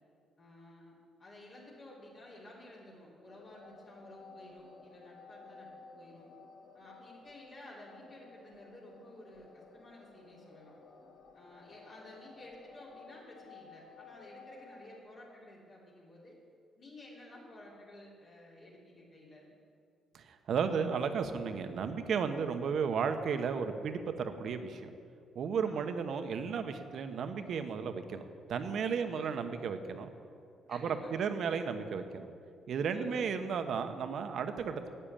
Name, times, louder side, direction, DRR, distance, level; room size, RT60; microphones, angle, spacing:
voice 1, 0.4-0.9 1.2-6.3 6.7-10.7 11.3-16.4 16.8-19.5 25.6-26.2 29.0-29.4 30.6-31.3 32.9-33.3, left 1 dB, 50° left, -7 dB, 3.3 m, -53 dB
sound 1, 3.3-15.0, left 4 dB, 65° left, 1.3 m, -55 dB
voice 2, 20.1-24.9 25.3-28.2 28.5-30.1 30.7-32.3 32.7-34.9, right 6 dB, 65° right, 8 dB, 1.0 m, -34 dB
10.0 x 8.9 x 8.9 m, 2.4 s
cardioid pair, 90°, 0 cm